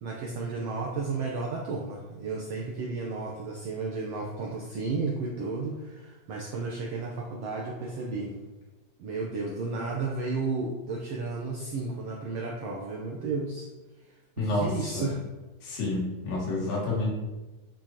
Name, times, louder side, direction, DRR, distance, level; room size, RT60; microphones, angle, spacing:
voice 1, 0.0-8.4 9.0-13.7 14.0-15.2, right 3 dB, 80° right, -2 dB, 1.4 m, -33 dB
voice 2, 14.4-15.1 15.6-17.1, left 2 dB, 80° left, -4 dB, 3.5 m, -29 dB
8.6 x 6.3 x 2.9 m, 1.1 s
omnidirectional pair, 3.9 m